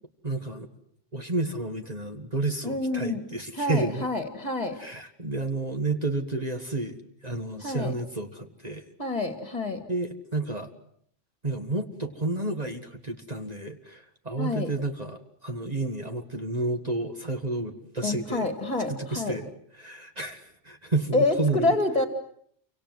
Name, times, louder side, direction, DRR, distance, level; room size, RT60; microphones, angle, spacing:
voice 1, 0.2-0.7 1.1-4.1 4.8-8.8 9.9-10.7 11.4-18.5 18.9-19.5 19.8-21.7, right 2 dB, 35° right, 5 dB, 1.8 m, -31 dB
voice 2, 2.6-3.2 3.5-4.8 7.6-7.9 9.0-9.8 14.4-14.7 18.0-19.4 21.1-22.1, left 2 dB, 35° left, 7 dB, 2.6 m, -27 dB
29.0 x 25.5 x 7.9 m, 0.65 s
omnidirectional pair, 1.2 m